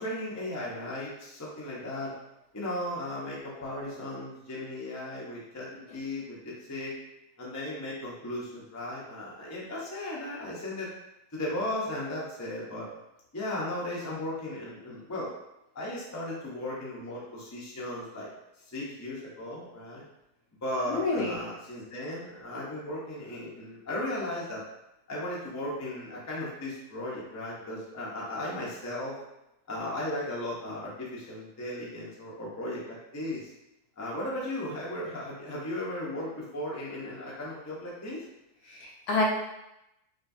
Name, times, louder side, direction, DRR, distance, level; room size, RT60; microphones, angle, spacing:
voice 1, 0.0-2.1 2.5-5.7 5.9-6.9 7.4-10.9 11.3-12.9 13.3-15.3 15.7-18.3 18.7-20.0 20.6-24.6 25.1-29.1 29.7-33.5 34.0-38.2, left 1 dB, 20° left, -5 dB, 0.5 m, -36 dB
voice 2, 20.9-21.4 38.7-39.2, left 3 dB, 75° left, -3 dB, 1.4 m, -28 dB
5.0 x 2.4 x 2.7 m, 0.88 s
omnidirectional pair, 1.7 m